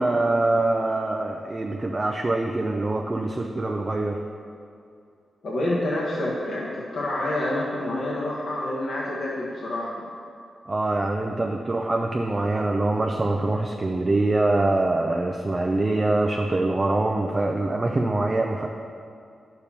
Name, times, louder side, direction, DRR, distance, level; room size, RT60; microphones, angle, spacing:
voice 1, 0.0-4.2 10.7-18.7, right 2 dB, 25° right, 2 dB, 0.4 m, -24 dB
voice 2, 5.4-10.0, left 1 dB, 70° left, -6 dB, 1.2 m, -28 dB
9.8 x 6.7 x 2.9 m, 2.4 s
wide cardioid pair, 125°, 0 cm